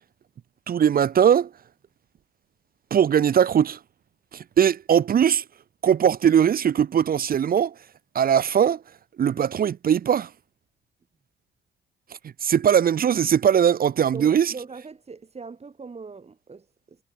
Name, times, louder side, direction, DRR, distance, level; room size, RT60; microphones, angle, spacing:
voice 1, 0.7-1.5 2.9-3.8 4.3-5.4 5.8-7.7 8.1-8.8 9.2-10.3 12.4-14.5, right 8 dB, 50° right, 0.8 m, -20 dB
voice 2, 14.1-17.0, right 4 dB, 30° right, 7.4 m, -40 dB
cardioid pair, 90°, 20 cm